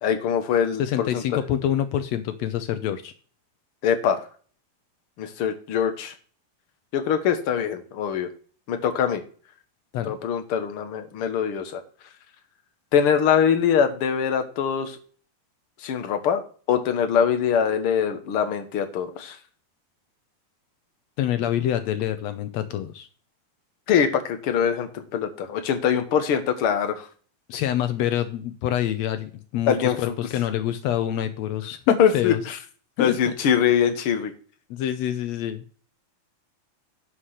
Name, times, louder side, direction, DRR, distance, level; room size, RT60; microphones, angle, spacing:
voice 1, 0.0-1.2 3.8-4.2 5.2-6.1 6.9-8.3 8.7-9.2 10.0-11.8 12.9-15.0 15.8-16.4 16.7-19.4 23.9-27.1 29.7-30.1 32.0-32.6 33.0-34.3, left 8 dB, 60° left, 7 dB, 1.5 m, -23 dB
voice 2, 0.8-3.1 9.9-10.1 21.2-23.1 27.5-32.4 33.0-33.3 34.7-35.6, left 11 dB, 90° left, 10 dB, 1.5 m, -26 dB
11.5 x 4.9 x 6.5 m, 0.42 s
omnidirectional pair, 4.1 m